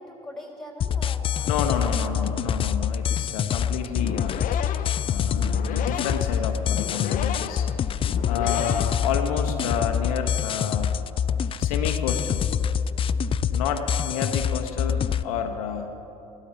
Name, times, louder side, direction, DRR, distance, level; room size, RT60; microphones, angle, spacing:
voice 1, 0.0-2.3, left 1 dB, 5° left, 1 dB, 3.2 m, -42 dB
sound 1, 0.8-15.2, left 8 dB, 30° left, 0.4 m, -26 dB
voice 2, 1.5-4.4 5.0-7.7 8.3-10.9 11.6-12.5 13.5-15.9, left 7 dB, 75° left, 5 dB, 0.9 m, -30 dB
sound 2, 4.0-9.6, left 9 dB, 45° left, 0.7 m, -35 dB
14.5 x 12.5 x 5.7 m, 2.9 s
hypercardioid pair, 65°, 18 cm